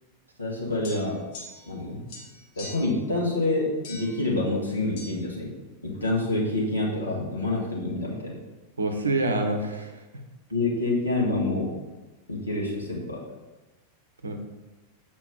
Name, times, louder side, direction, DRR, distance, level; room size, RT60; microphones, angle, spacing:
voice 1, 0.4-1.2 1.7-2.1 2.6-5.5 5.8-8.4 10.5-11.8 12.3-13.2, left 2 dB, 75° left, -4 dB, 1.8 m, -27 dB
sound 1, 0.8-1.8 2.1-3.0 3.8-4.2 5.0-5.1, left 2 dB, 50° left, 1.6 m, -43 dB
voice 2, 8.8-10.0 14.2-14.4, right 2 dB, 75° right, 5 dB, 1.0 m, -26 dB
6.9 x 5.2 x 5.2 m, 1.1 s
figure-of-eight pair, 90°, 0 cm